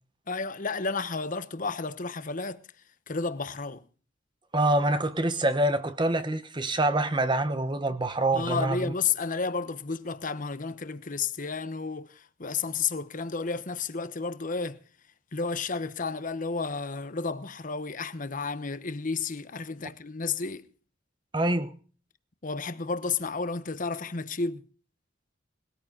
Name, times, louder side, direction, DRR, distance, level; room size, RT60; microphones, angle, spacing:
voice 1, 0.3-2.6 3.1-3.8 8.3-14.8 15.3-20.6 22.4-24.6, left 4 dB, 45° left, 1.0 m, -32 dB
voice 2, 4.5-8.9 21.3-21.7, right 2 dB, 25° right, 1.0 m, -26 dB
20.5 x 13.5 x 3.9 m
head